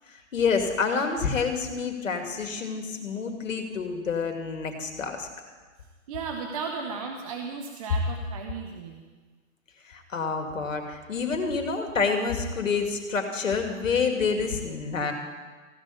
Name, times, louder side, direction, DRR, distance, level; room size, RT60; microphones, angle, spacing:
voice 1, 0.3-5.3 9.9-15.1, left 5 dB, 65° left, 5 dB, 2.5 m, -28 dB
voice 2, 6.1-9.0, right 5 dB, 25° right, 3 dB, 0.9 m, -35 dB
15.0 x 6.4 x 9.7 m, 1.4 s
hypercardioid pair, 145°, 42 cm